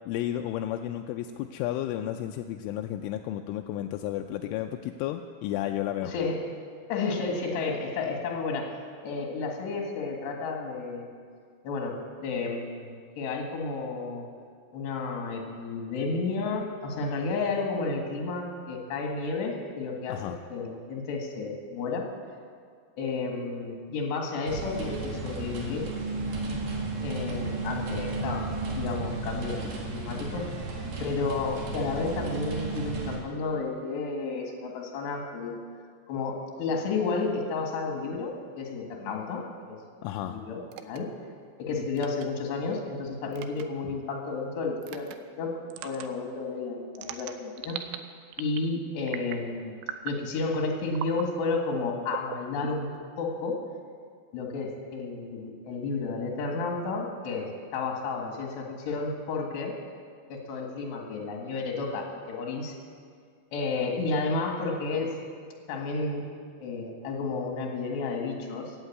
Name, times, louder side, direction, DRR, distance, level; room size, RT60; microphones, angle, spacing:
voice 1, 0.1-6.1 20.1-20.4 40.0-40.4, left 12 dB, 85° left, 5 dB, 3.1 m, -32 dB
voice 2, 6.0-6.4 6.9-8.8 9.0-11.2 11.6-14.3 14.7-22.1 23.0-25.9 27.0-28.5 28.8-29.6 29.9-30.5 31.0-35.6 36.1-39.8 40.3-41.1 41.6-45.1 45.4-47.8 48.4-49.8 50.0-52.9 53.2-53.6 54.3-59.8 60.3-62.8 63.5-65.2 65.7-66.3 66.6-68.8, left 4 dB, 65° left, 1 dB, 3.8 m, -32 dB
sound 1, 24.5-33.2, right 2 dB, 50° right, 2.3 m, -33 dB
sound 2, 40.7-41.0 42.0-42.3 43.3-43.6 44.8-45.2 45.7-46.1 46.9-48.0 48.3-48.7 49.1-49.5 49.8-50.2 50.9-51.3 52.1-53.0, right 11 dB, 80° right, 3.0 m, -38 dB
16.0 x 9.0 x 8.6 m, 2.1 s
omnidirectional pair, 5.6 m